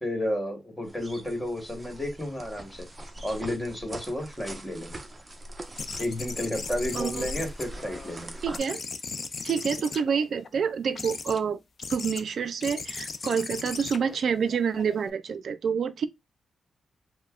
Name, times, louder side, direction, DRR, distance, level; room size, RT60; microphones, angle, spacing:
voice 1, 0.0-2.9 3.2-5.0 6.0-8.3, left 1 dB, 10° left, 1.4 m, -32 dB
sound 1, 0.8-8.6, right 1 dB, 20° right, 0.7 m, -42 dB
sound 2, 5.8-8.2 8.5-10.5 10.9-11.4 11.8-12.2 12.6-15.1, left 4 dB, 45° left, 0.4 m, -37 dB
voice 2, 6.9-7.2 8.4-8.8 9.4-11.6 11.9-16.1, right 6 dB, 65° right, 0.4 m, -27 dB
5.3 x 2.1 x 2.4 m
cardioid pair, 110°, 0 cm